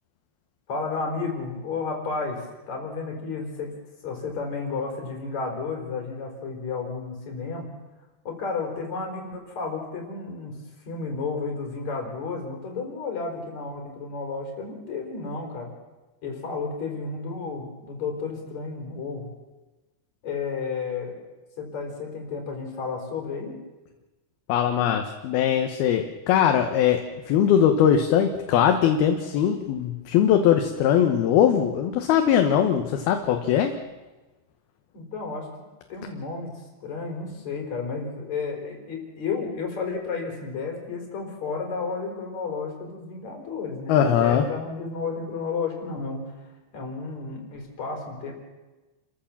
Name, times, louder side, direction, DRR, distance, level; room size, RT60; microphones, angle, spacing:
voice 1, 0.7-3.7 4.0-7.7 8.3-10.5 10.9-15.7 16.2-19.3 20.2-21.2 21.6-23.6 34.9-35.5 35.9-46.2 46.7-48.3, left 4 dB, 40° left, 1 dB, 5.5 m, -32 dB
voice 2, 24.5-33.7 43.9-44.4, left 9 dB, 70° left, 5 dB, 2.9 m, -21 dB
29.5 x 14.0 x 7.4 m, 1.2 s
omnidirectional pair, 4.8 m